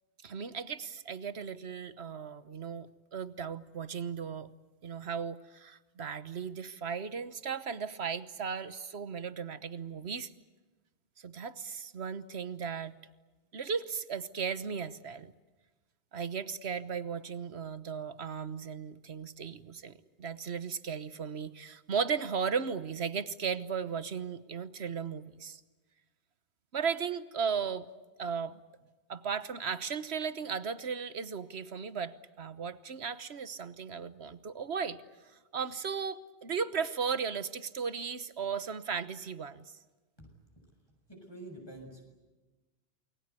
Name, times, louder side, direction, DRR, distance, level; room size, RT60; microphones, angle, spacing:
voice 1, 0.2-4.5 4.8-10.3 11.2-12.9 13.5-15.3 16.1-25.6 26.7-27.9 28.2-28.6 29.1-35.0 35.5-39.6, right 6 dB, 70° right, 13 dB, 1.4 m, -36 dB
voice 2, 41.1-42.1, right 1 dB, 20° left, 2 dB, 6.8 m, -47 dB
29.0 x 22.0 x 8.3 m, 1.2 s
omnidirectional pair, 1.1 m